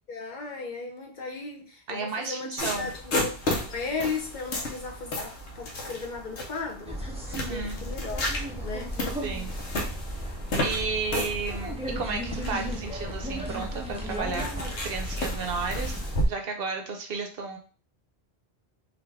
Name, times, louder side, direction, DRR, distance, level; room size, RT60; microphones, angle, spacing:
voice 1, 0.1-8.3 8.6-9.0, left 4 dB, 50° left, 0.7 m, -36 dB
voice 2, 1.9-2.9 7.3-7.8 9.2-9.6 10.6-16.0 16.2-17.6, right 4 dB, 60° right, 0.8 m, -33 dB
sound 1, 2.6-16.3, left 1 dB, 90° left, 1.2 m, -34 dB
sound 2, 6.9-16.2, equal, 10° right, 0.5 m, -35 dB
4.0 x 2.5 x 3.3 m
omnidirectional pair, 1.1 m